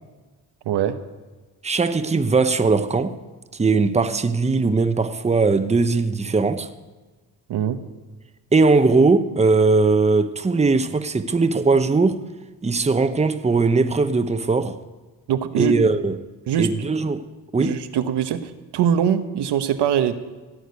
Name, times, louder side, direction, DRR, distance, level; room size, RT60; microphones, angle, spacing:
voice 1, 0.6-1.0 7.5-7.8 15.3-15.7 16.5-16.7 17.6-20.1, right 9 dB, 85° right, 1.2 m, -22 dB
voice 2, 1.6-3.2 3.5-6.7 8.5-12.2 12.6-14.8 15.5-16.2 16.6-17.2 17.5-17.8, right 3 dB, 15° right, 0.9 m, -19 dB
16.5 x 6.5 x 9.6 m
cardioid pair, 100°, 40 cm